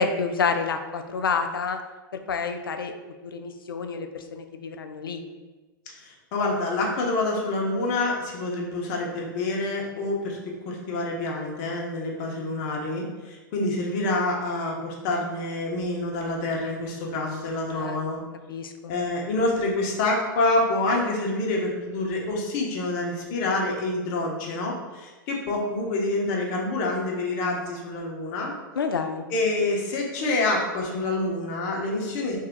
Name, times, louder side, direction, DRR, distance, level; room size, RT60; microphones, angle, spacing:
voice 1, 0.0-1.8 2.1-2.9 3.2-5.2 17.7-18.0 18.5-18.9 28.8-29.3, left 5 dB, 90° left, 7 dB, 0.4 m, -28 dB
voice 2, 6.0-10.4 10.7-18.2 18.9-28.5 29.3-32.4, left 2 dB, 50° left, -1 dB, 1.1 m, -27 dB
3.4 x 2.7 x 3.8 m, 1.2 s
hypercardioid pair, 110°, 11 cm